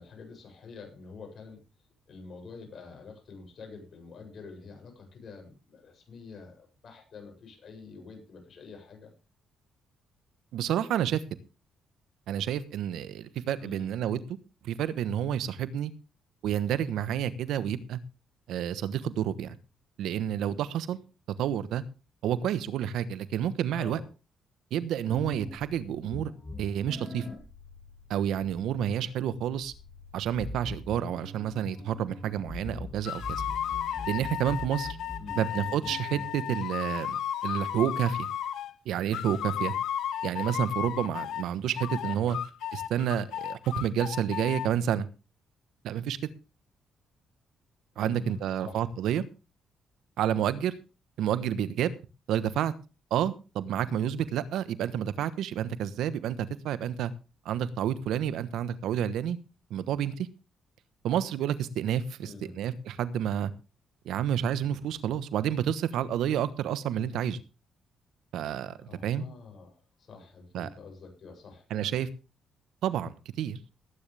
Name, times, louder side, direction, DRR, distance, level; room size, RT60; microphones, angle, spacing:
voice 1, 0.0-1.6 2.1-9.1 13.6-13.9 23.8-24.1 35.2-35.5 42.0-42.4 48.0-48.9 62.2-62.6 68.8-72.0, left 4 dB, 55° left, 3 dB, 7.7 m, -47 dB
voice 2, 10.5-11.2 12.3-14.2 14.6-15.9 16.4-18.0 18.5-19.6 20.0-21.0 21.4-21.8 22.2-24.0 24.7-26.3 26.6-27.3 28.1-29.7 30.1-33.4 34.1-35.0 35.4-37.2 37.4-38.3 38.8-39.7 40.2-42.4 42.7-45.1 45.8-46.2 48.0-49.2 50.2-50.7 51.2-51.9 52.3-52.7 53.1-57.1 57.4-59.4 59.7-60.3 61.0-63.5 64.0-67.4 68.3-68.7 69.0-69.2 70.5-70.7 71.7-72.1 72.8-73.6, right 10 dB, 80° right, 14 dB, 1.2 m, -29 dB
sound 1, 25.1-36.4, left 1 dB, 20° left, 5.6 m, -43 dB
sound 2, 33.0-38.7 39.1-41.5 41.8-44.7, left 10 dB, 80° left, 1.3 m, -34 dB
19.0 x 9.9 x 3.5 m, 0.31 s
cardioid pair, 90°, 0 cm